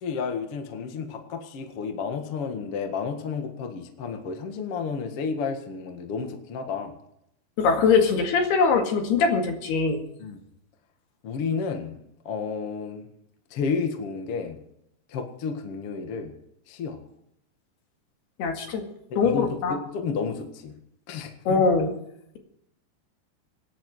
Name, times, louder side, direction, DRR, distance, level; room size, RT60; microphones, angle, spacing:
voice 1, 0.0-6.9 10.2-10.4 11.2-13.1 13.5-14.6 15.1-16.3 16.7-17.0 19.1-20.7 21.1-21.9, left 5 dB, 50° left, 5 dB, 1.8 m, -31 dB
voice 2, 7.6-10.0 18.4-18.8 19.2-19.8 21.5-21.9, left 5 dB, 70° left, 3 dB, 3.9 m, -22 dB
25.5 x 10.5 x 4.8 m, 0.76 s
omnidirectional pair, 5.0 m